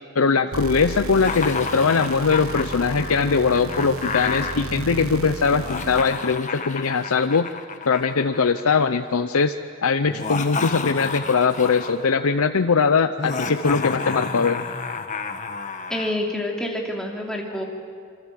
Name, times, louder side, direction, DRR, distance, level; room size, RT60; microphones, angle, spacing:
voice 1, 0.2-7.5 7.9-9.5 9.8-14.6, left 5 dB, 85° left, 9 dB, 0.7 m, -21 dB
sound 1, 0.5-6.3, right 2 dB, 80° right, 1.3 m, -33 dB
Laughter, 1.1-4.5 5.5-8.8 10.1-12.1 13.2-16.1, left 4 dB, 35° left, 1.4 m, -30 dB
voice 2, 15.9-17.6, left 1 dB, 5° left, -1 dB, 3.1 m, -27 dB
26.5 x 25.0 x 7.6 m, 2.2 s
head